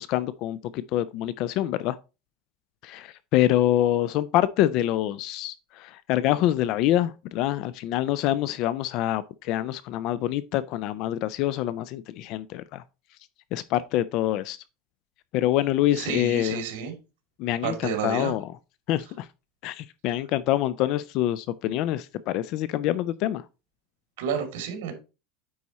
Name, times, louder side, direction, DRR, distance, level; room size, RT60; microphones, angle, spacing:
voice 1, 0.0-2.0 2.8-12.8 13.5-14.6 15.3-16.6 17.4-18.4 18.9-19.3 19.6-23.4, left 13 dB, 45° left, 0.4 m, -26 dB
voice 2, 15.9-16.9 17.6-18.4 24.2-24.9, right 7 dB, 75° right, 2.5 m, -30 dB
9.3 x 4.2 x 4.1 m
supercardioid pair, 165°, 0 cm